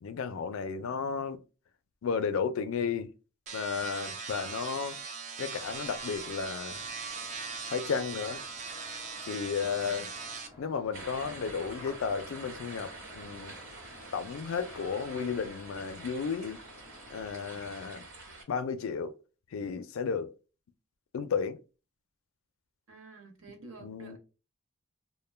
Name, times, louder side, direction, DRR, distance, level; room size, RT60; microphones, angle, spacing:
voice 1, 0.0-1.4 2.0-3.1 3.5-5.0 5.4-6.9 7.7-8.4 9.2-10.1 10.6-13.6 14.1-16.6 17.1-18.1 18.5-19.2 19.5-20.3 21.1-21.6 23.8-24.2, left 6 dB, 70° left, 0.4 m, -33 dB
sound 1, 3.5-10.5, right 5 dB, 35° right, 0.4 m, -40 dB
sound 2, 5.6-17.3, left 1 dB, 15° right, 0.9 m, -53 dB
sound 3, 10.9-18.4, right 2 dB, 90° right, 1.4 m, -47 dB
voice 2, 22.9-24.2, right 3 dB, 70° right, 0.8 m, -49 dB
2.2 x 2.1 x 3.1 m
head